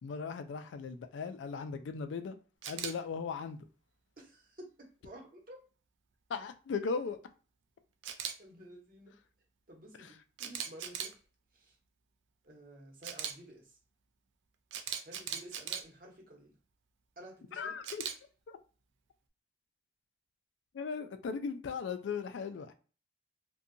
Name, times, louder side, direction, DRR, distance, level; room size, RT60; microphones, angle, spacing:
voice 1, 0.0-2.4 2.7-3.6 6.3-7.2 10.0-10.1 17.5-18.0 18.5-18.6 20.7-22.7, left 5 dB, 80° left, 0.3 m, -38 dB
Camera, 2.6-2.9 8.0-8.3 10.4-11.1 13.0-13.3 14.7-15.8 17.8-18.1, right 8 dB, 85° right, 0.4 m, -38 dB
voice 2, 4.2-4.7 5.0-5.6 8.4-9.1 9.7-11.1 11.5-11.8 12.4-13.8 15.0-16.5 17.2-17.7, right 1 dB, 50° right, 0.9 m, -52 dB
2.7 x 2.2 x 2.5 m
head